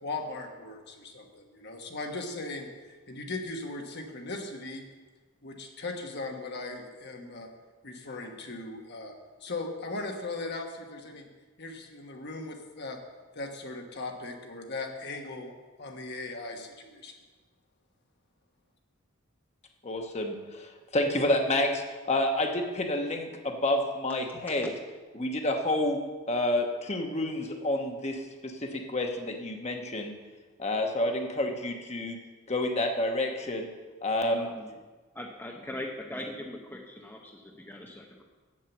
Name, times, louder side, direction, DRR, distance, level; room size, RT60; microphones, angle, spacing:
voice 1, 0.0-4.8 5.4-7.5 7.8-9.1 9.4-11.3 11.6-13.0 13.3-15.5 15.8-17.1, left 2 dB, 50° left, 3 dB, 1.3 m, -38 dB
voice 2, 19.8-24.7 25.2-26.0 26.3-30.1 30.6-32.2 32.5-33.7 34.0-34.5, left 1 dB, 30° left, 3 dB, 1.1 m, -29 dB
voice 3, 34.3-34.8 35.1-38.2, left 1 dB, 10° left, 0 dB, 0.7 m, -40 dB
7.5 x 7.4 x 8.1 m, 1.3 s
head